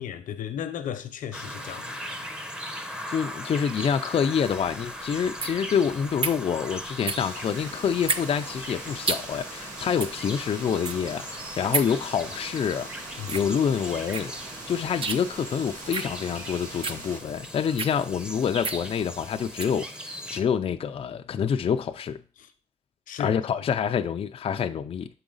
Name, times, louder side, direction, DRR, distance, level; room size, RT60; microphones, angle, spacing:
voice 1, 0.0-2.0 13.2-13.5 22.4-22.5 23.1-23.4, left 9 dB, 80° left, 0.8 m, -35 dB
sound 1, 1.3-20.4, equal, 5° right, 0.8 m, -39 dB
voice 2, 3.1-12.9 13.3-14.3 14.7-22.2 23.2-25.1, left 7 dB, 45° left, 0.4 m, -27 dB
sound 2, 4.4-19.8, right 4 dB, 40° right, 0.7 m, -34 dB
sound 3, 7.2-17.2, right 2 dB, 80° right, 1.6 m, -42 dB
7.0 x 4.9 x 3.9 m
cardioid pair, 100°, 14 cm